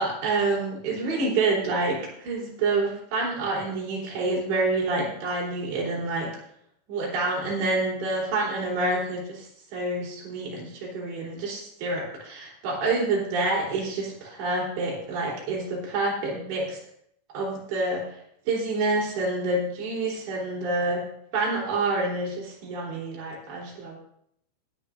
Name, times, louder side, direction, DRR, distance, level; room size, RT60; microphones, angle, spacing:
voice 1, 0.0-6.3 6.9-16.8 17.3-18.2 18.5-21.0 21.3-24.0, right 2 dB, 80° right, -2 dB, 5.8 m, -27 dB
20.0 x 11.0 x 2.5 m, 0.72 s
omnidirectional pair, 5.0 m